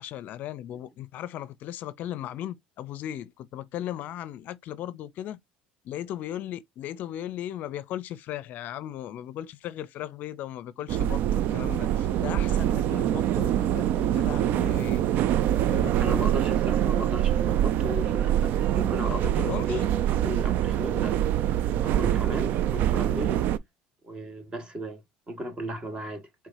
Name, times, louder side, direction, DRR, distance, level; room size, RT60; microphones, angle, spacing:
voice 1, 0.0-5.4 5.8-15.0 15.7-16.2 19.4-19.8, left 12 dB, 55° left, 0.5 m, -37 dB
sound 1, 10.9-23.6, right 11 dB, 60° right, 0.4 m, -25 dB
voice 2, 16.0-21.1 21.8-23.4 24.0-25.0 25.3-26.3, equal, 25° right, 1.7 m, -35 dB
4.7 x 3.5 x 2.6 m
supercardioid pair, 110°, 3 cm